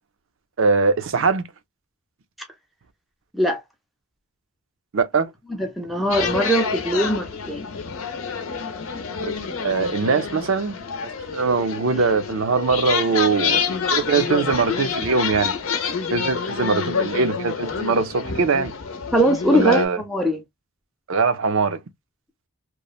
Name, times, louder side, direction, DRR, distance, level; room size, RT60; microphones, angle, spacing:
voice 1, 0.6-1.5 4.9-5.3 9.0-10.8 11.0-13.6 13.9-15.5 16.1-18.7 19.5-20.0 21.1-21.8, right 4 dB, 60° right, 0.5 m, -22 dB
voice 2, 5.5-7.7 19.1-20.4, equal, ahead, 0.5 m, -21 dB
sound 1, 6.1-19.9, left 6 dB, 70° left, 0.6 m, -27 dB
3.0 x 2.1 x 2.3 m
head